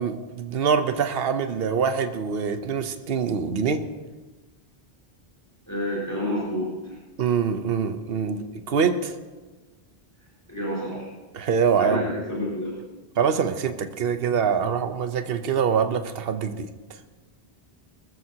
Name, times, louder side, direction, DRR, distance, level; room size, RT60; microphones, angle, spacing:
voice 1, 0.0-3.9 7.2-9.1 11.3-12.1 13.2-16.7, right 6 dB, 65° right, 9 dB, 1.0 m, -24 dB
voice 2, 5.7-6.7 10.5-11.1 11.8-12.7, left 1 dB, 15° left, -6 dB, 4.8 m, -29 dB
20.5 x 14.0 x 2.9 m, 1.2 s
omnidirectional pair, 1.1 m